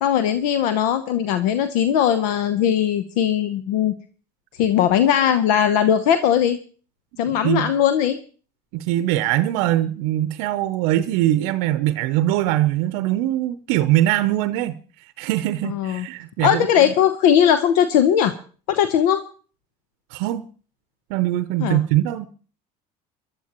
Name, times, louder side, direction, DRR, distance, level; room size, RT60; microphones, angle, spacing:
voice 1, 0.0-3.9 4.6-6.6 7.2-8.2 15.6-16.1 16.4-18.3 18.7-19.2 21.6-21.8, left 9 dB, 80° left, 0.9 m, -19 dB
voice 2, 7.2-7.7 8.7-14.7 15.2-16.9 20.1-20.4 21.1-22.3, right 14 dB, 75° right, 0.7 m, -22 dB
21.5 x 12.5 x 3.0 m
supercardioid pair, 80°, 20 cm